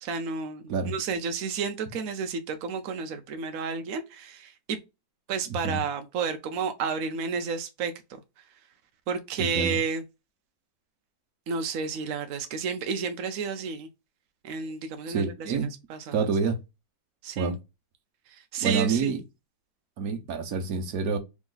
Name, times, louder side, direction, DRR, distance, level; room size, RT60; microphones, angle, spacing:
voice 1, 0.0-4.8 5.3-7.9 8.4-8.5 9.1-10.0 11.5-13.9 14.4-15.2 15.6-16.3 17.2-17.6 18.3-19.2, right 5 dB, 75° right, 0.8 m, -31 dB
voice 2, 9.4-9.8 15.1-15.7 16.1-16.6 17.4-17.6 18.6-19.2 20.0-21.2, right 5 dB, 55° right, 1.2 m, -27 dB
3.6 x 3.1 x 3.9 m
omnidirectional pair, 2.1 m